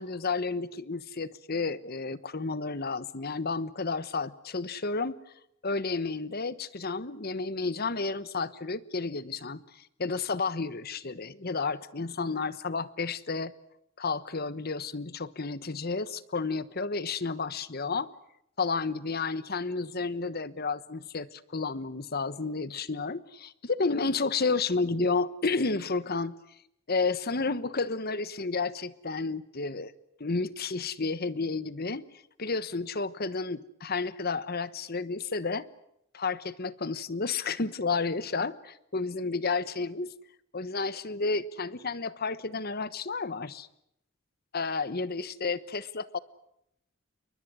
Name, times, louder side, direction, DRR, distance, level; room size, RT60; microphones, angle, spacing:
voice 1, 0.0-5.2 5.6-13.5 14.0-18.1 18.6-26.3 26.9-29.9 30.2-32.0 32.4-35.7 36.1-40.1 40.5-43.7 44.5-46.2, left 4 dB, 50° left, 16 dB, 1.2 m, -31 dB
29.5 x 23.5 x 6.3 m, 0.77 s
head